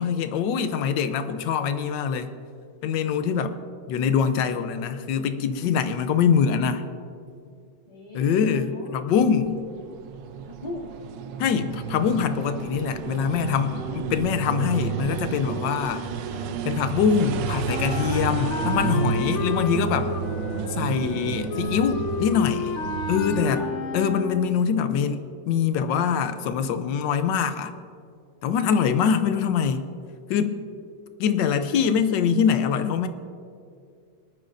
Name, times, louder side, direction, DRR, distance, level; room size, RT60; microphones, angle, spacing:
voice 1, 0.0-2.3 2.8-3.6 3.9-6.8 8.1-9.6 11.4-16.1 16.6-20.1 20.7-22.7 23.1-23.7 23.9-27.7 28.4-29.9 30.3-30.6 31.2-33.1, left 7 dB, 80° left, 10 dB, 1.4 m, -24 dB
voice 2, 5.7-6.1 7.9-9.0 10.5-10.9 13.8-14.2 16.1-16.7 19.2-19.6 23.4-23.6 28.6-29.3, left 3 dB, 25° left, -6 dB, 2.6 m, -39 dB
sound 1, 9.1-23.4, right 8 dB, 80° right, 1.3 m, -31 dB
Wind instrument woodwind instrument, 17.7-24.7, left 5 dB, 60° left, 0.7 m, -31 dB
25.5 x 9.2 x 2.6 m, 2.3 s
omnidirectional pair, 2.0 m